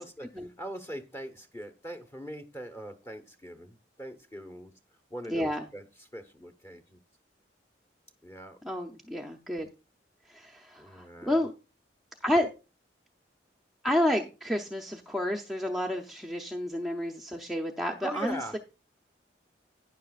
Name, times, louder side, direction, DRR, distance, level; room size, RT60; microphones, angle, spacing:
voice 1, 0.6-4.7 5.1-5.8 6.1-7.0 8.2-8.6 10.8-11.4 18.0-18.6, right 1 dB, 15° left, 1.0 m, -41 dB
voice 2, 5.3-5.7 8.6-9.7 10.3-11.5 12.2-12.5 13.8-18.6, left 1 dB, ahead, 0.6 m, -30 dB
11.0 x 9.9 x 2.4 m
head